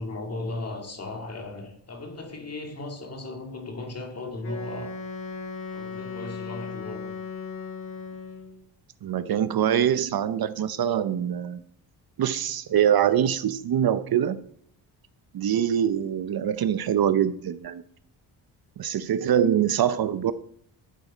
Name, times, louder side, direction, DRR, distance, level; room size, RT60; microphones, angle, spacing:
voice 1, 0.0-5.0 5.7-7.2, left 2 dB, 35° left, 2.1 m, -36 dB
Wind instrument woodwind instrument, 4.4-8.6, left 4 dB, 65° left, 5.9 m, -37 dB
voice 2, 9.0-11.6 12.2-14.4 15.3-17.8 18.8-20.3, right 9 dB, 55° right, 0.7 m, -24 dB
11.0 x 8.2 x 5.1 m
cardioid pair, 125°, 43 cm